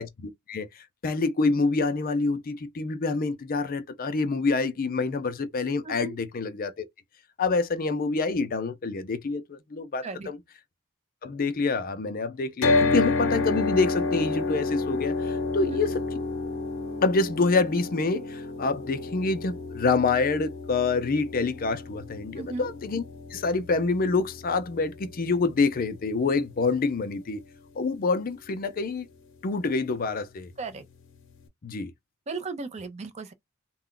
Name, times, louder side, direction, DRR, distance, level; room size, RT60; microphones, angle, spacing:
voice 1, 0.0-6.8 7.4-10.4 11.2-16.0 17.0-23.0 23.3-27.4 27.8-29.1 29.4-30.5 31.6-31.9, left 3 dB, 40° left, 0.4 m, -27 dB
sound 1, 12.6-26.7, left 3 dB, 60° left, 0.8 m, -30 dB
voice 2, 22.4-22.7 30.6-30.9 32.3-33.3, right 3 dB, 30° right, 0.5 m, -35 dB
2.3 x 2.1 x 3.7 m
head